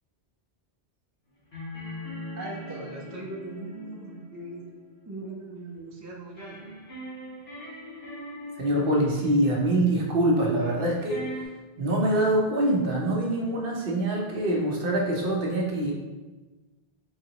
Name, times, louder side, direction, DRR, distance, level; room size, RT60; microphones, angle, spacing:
sound 1, 1.5-5.6 6.4-11.5, equal, 75° left, 1.6 m, -41 dB
voice 1, 2.3-4.6 5.0-6.7, right 2 dB, 20° right, -3 dB, 0.5 m, -39 dB
voice 2, 8.6-11.3 11.8-15.9, right 1 dB, 65° right, -1 dB, 0.9 m, -24 dB
4.0 x 3.3 x 2.8 m, 1.2 s
omnidirectional pair, 1.1 m